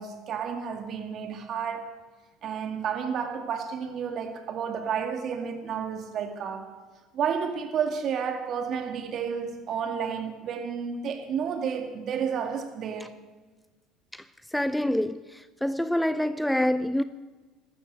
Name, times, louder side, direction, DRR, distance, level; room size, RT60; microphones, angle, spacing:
voice 1, 0.0-1.9 2.4-6.7 7.1-13.2, right 7 dB, 50° right, 2.2 m, -31 dB
voice 2, 14.5-15.2 15.6-17.0, left 1 dB, 5° left, 0.5 m, -25 dB
13.5 x 13.5 x 6.6 m
hypercardioid pair, 65°, 0 cm